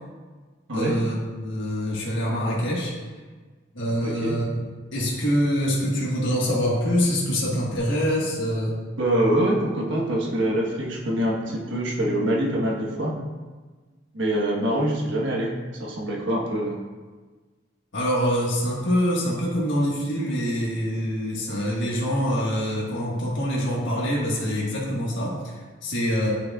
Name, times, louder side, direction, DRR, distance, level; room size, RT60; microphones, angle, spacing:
voice 1, 0.7-2.9 3.7-4.6 4.9-8.8 17.9-26.3, equal, 65° left, -4 dB, 1.5 m, -25 dB
voice 2, 4.0-4.4 8.9-13.1 14.1-15.5 15.8-16.8, right 1 dB, 65° right, -2 dB, 1.3 m, -24 dB
8.3 x 6.3 x 2.4 m, 1.4 s
head